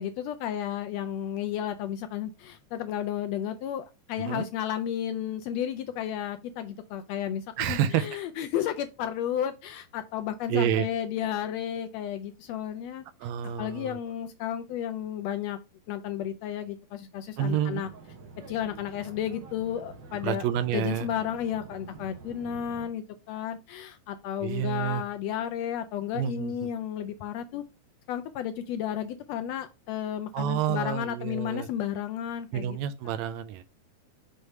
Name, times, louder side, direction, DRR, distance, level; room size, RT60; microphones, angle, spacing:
voice 1, 0.0-13.0 13.6-15.6 15.9-17.9 18.5-20.4 20.7-27.6 28.1-32.8, left 10 dB, 80° left, 1.5 m, -33 dB
voice 2, 7.6-8.2 10.5-10.9 13.2-14.0 17.4-17.8 20.2-21.1 24.4-25.0 26.1-26.5 30.3-31.7 32.5-33.6, right 10 dB, 80° right, 1.7 m, -29 dB
sound 1, 17.5-22.9, right 4 dB, 50° right, 1.6 m, -47 dB
6.4 x 3.4 x 5.3 m
omnidirectional pair, 3.3 m